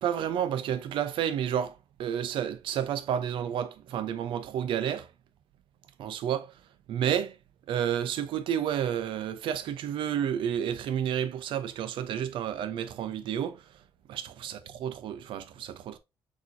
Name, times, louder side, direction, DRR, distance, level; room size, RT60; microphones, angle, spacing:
voice 1, 0.0-1.7 2.0-5.1 6.0-6.5 6.9-7.3 7.7-13.6 14.1-16.0, right 9 dB, 75° right, 0.6 m, -30 dB
6.1 x 2.9 x 2.6 m
cardioid pair, 135°, 9 cm